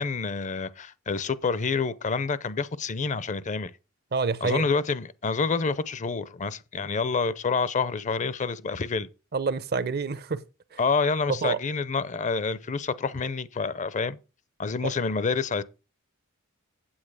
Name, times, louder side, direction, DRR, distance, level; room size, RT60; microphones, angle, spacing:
voice 1, 0.0-3.7 4.4-9.1 10.8-14.2 14.6-15.6, left 4 dB, 35° left, 0.5 m, -28 dB
voice 2, 4.1-4.7 9.3-10.4 10.7-10.8 11.4-11.6 14.8-14.9, right 4 dB, 45° right, 0.6 m, -27 dB
8.8 x 8.1 x 4.8 m
head